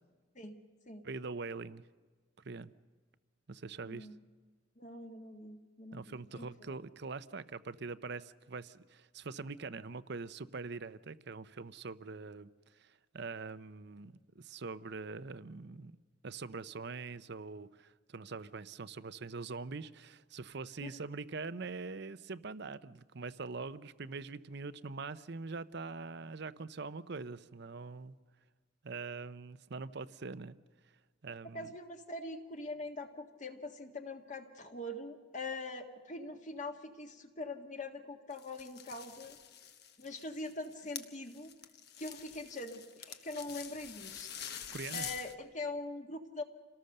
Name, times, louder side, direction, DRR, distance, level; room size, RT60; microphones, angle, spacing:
voice 1, 1.0-1.8 2.4-2.7 3.5-4.1 5.9-16.0 16.2-28.1 28.8-30.6 31.2-31.7 44.7-45.1, right 4 dB, 60° right, 14 dB, 0.7 m, -43 dB
voice 2, 3.8-4.2 4.8-6.8 20.8-21.0 31.5-39.4 40.0-41.5 42.0-46.4, left 2 dB, 40° left, 4 dB, 1.8 m, -43 dB
sound 1, 38.3-45.3, left 9 dB, 55° left, 1.2 m, -46 dB
27.5 x 18.5 x 6.7 m, 1.5 s
head